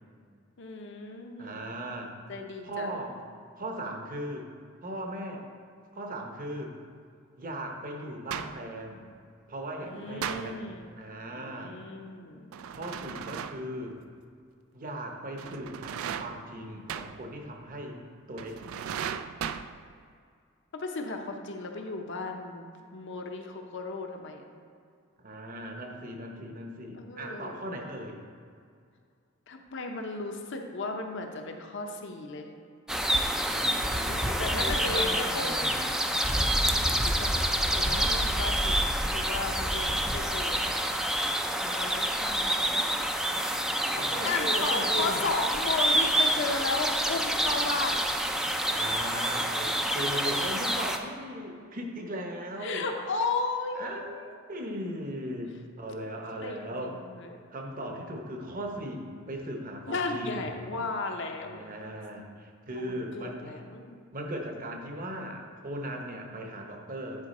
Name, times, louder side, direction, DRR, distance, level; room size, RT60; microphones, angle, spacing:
voice 1, 0.6-1.7 2.3-2.9 9.8-10.9 11.3-12.5 20.7-22.7 22.9-24.4 26.9-27.7 29.5-32.5 34.4-35.6 36.6-38.8 39.1-40.6 41.5-42.9 44.2-48.0 52.6-54.3 56.4-57.4 59.9-61.6 62.7-64.0, left 3 dB, 60° left, 3 dB, 0.7 m, -35 dB
voice 2, 1.4-2.1 2.6-3.2 3.5-4.5 4.8-5.4 5.9-6.7 7.4-9.1 9.5-10.7 11.0-11.7 12.7-14.0 14.7-18.0 18.3-18.6 25.2-28.2 33.4-35.8 43.9-45.2 48.7-52.9 53.8-57.0 57.5-60.5 61.4-63.6 64.1-67.3, right 1 dB, 40° right, 2 dB, 0.9 m, -38 dB
sound 1, 8.3-8.7 10.2-10.8 12.5-13.8 15.4-16.5 16.9-17.3 18.4-20.0, right 8 dB, 80° right, 0.3 m, -37 dB
sound 2, 32.9-51.0, equal, 5° right, 0.4 m, -27 dB
9.9 x 4.5 x 4.2 m, 2.2 s
head